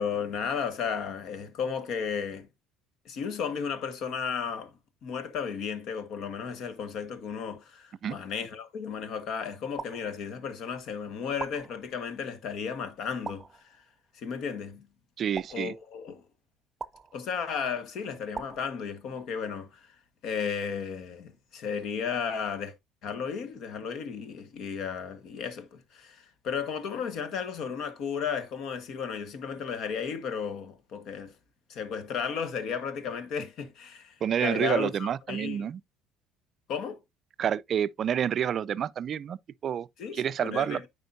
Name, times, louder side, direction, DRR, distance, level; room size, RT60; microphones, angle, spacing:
voice 1, 0.0-2.5 3.0-4.7 5.0-13.5 14.1-14.9 15.5-16.2 17.1-19.9 20.2-22.7 23.0-31.3 31.7-35.6 36.7-37.0 40.0-40.9, left 6 dB, 60° left, 1.4 m, -34 dB
sound 1, 9.8-10.7 11.4-12.3 13.2-14.1 15.3-16.3 16.8-17.6 18.3-19.3, right 4 dB, 25° right, 0.7 m, -43 dB
voice 2, 15.2-15.7 34.2-35.8 37.4-39.9 40.1-40.9, right 9 dB, 50° right, 0.3 m, -29 dB
9.2 x 5.0 x 2.6 m
hypercardioid pair, 70°, 0 cm